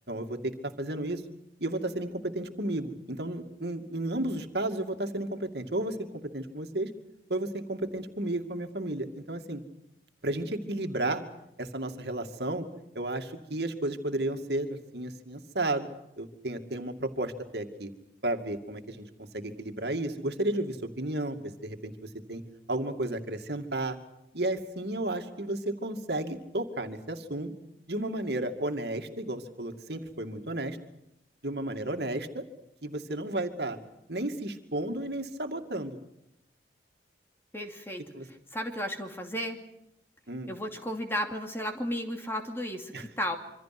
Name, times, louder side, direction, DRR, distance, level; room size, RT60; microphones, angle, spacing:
voice 1, 0.1-1.2 1.6-6.0 6.2-6.9 7.3-9.6 10.2-11.2 11.6-12.7 12.9-15.9 16.2-17.9 18.2-22.4 22.7-24.0 24.3-27.5 27.9-30.8 31.4-32.4 32.8-33.8 34.1-36.0 38.1-38.3 40.3-40.5 42.9-43.0, right 1 dB, 65° right, 5 dB, 2.4 m, -33 dB
voice 2, 37.5-39.6 40.5-43.4, equal, 15° left, 3 dB, 2.7 m, -34 dB
27.0 x 25.0 x 6.1 m, 0.86 s
head